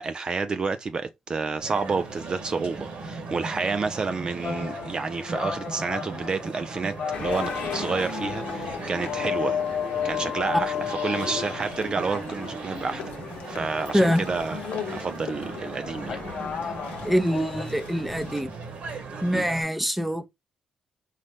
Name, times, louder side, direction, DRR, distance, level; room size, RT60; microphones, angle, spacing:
voice 1, 0.0-9.6 10.0-13.0 13.5-14.6 14.9-16.2 19.3-19.5, right 4 dB, 40° right, 0.4 m, -29 dB
sound 1, 1.6-19.6, right 3 dB, 75° right, 1.5 m, -38 dB
sound 2, 4.4-17.7, left 8 dB, 55° left, 0.4 m, -34 dB
sound 3, 7.1-18.4, left 6 dB, 75° left, 0.9 m, -39 dB
voice 2, 13.9-14.3 17.0-18.5 19.2-20.3, equal, 5° right, 0.7 m, -24 dB
4.0 x 2.5 x 3.4 m
cardioid pair, 85°, 2 cm